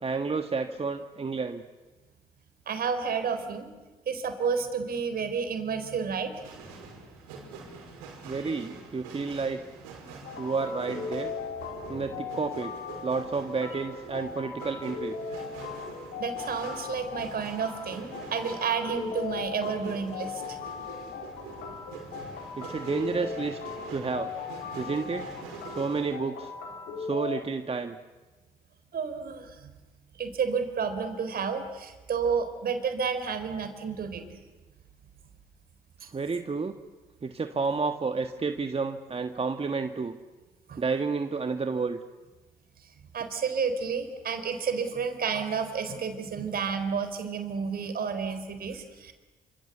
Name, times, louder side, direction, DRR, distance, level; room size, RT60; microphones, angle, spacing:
voice 1, 0.0-1.6 8.2-9.6 10.4-11.3 11.9-12.7 13.0-15.4 22.6-24.3 24.8-25.3 25.7-26.5 27.0-28.0 36.1-36.7 37.2-40.2 40.8-42.0, right 4 dB, 30° right, 7 dB, 1.6 m, -30 dB
voice 2, 2.7-3.7 4.1-6.3 16.2-20.6 28.9-29.7 30.1-34.2 36.0-36.1 40.7-40.8 43.1-49.1, right 6 dB, 55° right, 8 dB, 4.3 m, -31 dB
sound 1, 6.3-26.2, right 4 dB, 80° right, 5.5 m, -45 dB
sound 2, 10.2-27.4, left 5 dB, 70° left, 3.9 m, -38 dB
27.5 x 26.0 x 8.2 m, 1.2 s
hypercardioid pair, 45°, 18 cm